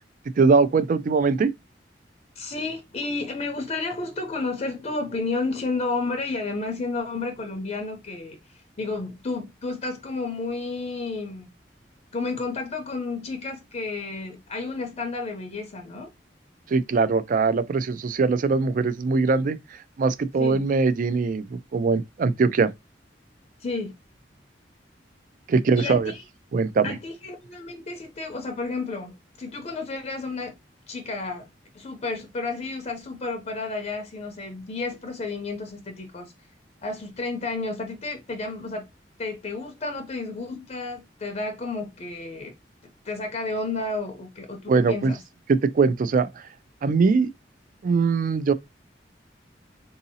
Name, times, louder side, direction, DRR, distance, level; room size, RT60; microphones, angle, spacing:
voice 1, 0.4-1.5 16.7-22.7 25.5-26.1 26.5-27.0 44.7-45.1 45.5-46.4 46.8-47.3 47.8-48.5, right 4 dB, 50° right, 0.3 m, -22 dB
voice 2, 2.4-8.4 8.8-11.5 12.1-16.1 20.4-20.6 23.6-23.9 25.8-26.2 26.8-30.6 30.9-31.5 31.7-36.3 36.8-38.9 39.2-42.5 43.0-45.2, left 3 dB, 40° left, 0.6 m, -31 dB
3.8 x 2.7 x 2.7 m
head